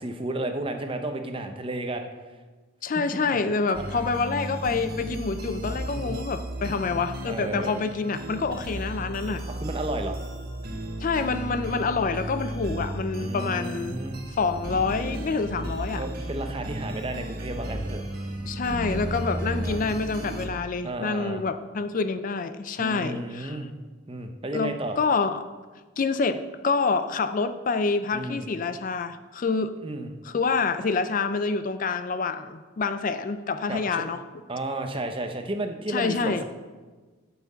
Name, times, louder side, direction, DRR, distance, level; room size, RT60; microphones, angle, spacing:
voice 1, 0.0-2.1 3.3-3.4 5.9-6.2 7.3-7.8 9.5-10.2 13.2-14.2 15.9-18.0 19.3-19.8 20.8-21.4 22.8-23.8 24.1-25.0 28.1-28.5 29.8-30.1 33.7-34.0 34.5-36.4, right 1 dB, 25° right, 5 dB, 0.7 m, -33 dB
voice 2, 2.8-9.4 11.0-14.0 14.3-16.0 18.4-23.6 24.5-25.4 26.0-29.7 30.2-34.2 35.9-36.4, left 4 dB, 40° left, 11 dB, 0.4 m, -27 dB
sound 1, 3.7-20.5, right 1 dB, 45° right, 1.3 m, -34 dB
9.4 x 5.8 x 7.3 m, 1.3 s
head